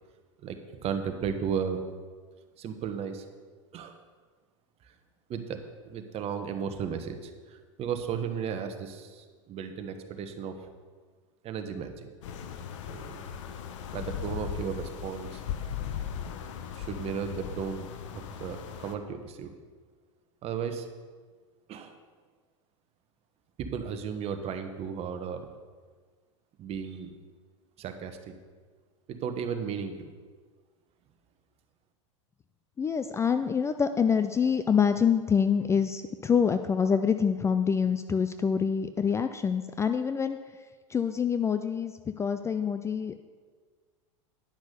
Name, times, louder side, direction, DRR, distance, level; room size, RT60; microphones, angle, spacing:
voice 1, 0.4-1.8 2.6-3.2 3.7-4.0 4.8-4.9 5.3-5.6 5.8-10.6 11.4-12.1 12.9-13.2 13.9-15.4 16.8-17.9 18.1-19.5 20.4-20.9 21.7-22.0 23.6-25.5 26.6-27.1 27.8-28.3 29.1-30.1, right 7 dB, 40° right, 7 dB, 1.2 m, -35 dB
sound 1, 12.2-19.0, left 8 dB, 65° left, 1.0 m, -38 dB
voice 2, 32.8-40.4 40.9-43.2, left 6 dB, 15° left, 9 dB, 0.4 m, -26 dB
10.5 x 6.1 x 6.7 m, 1.5 s
hypercardioid pair, 100°, 17 cm